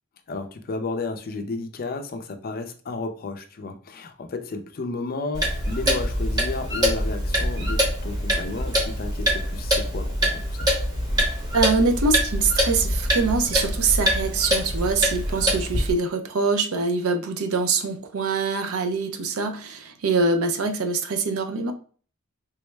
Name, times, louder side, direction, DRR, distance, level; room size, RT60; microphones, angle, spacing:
voice 1, 0.3-10.7, left 3 dB, 45° left, 6 dB, 0.5 m, -33 dB
Clock, 5.3-15.9, equal, 20° right, 0.9 m, -24 dB
voice 2, 11.5-21.7, right 4 dB, 85° right, 7 dB, 0.5 m, -24 dB
3.5 x 2.1 x 3.2 m, 0.41 s
head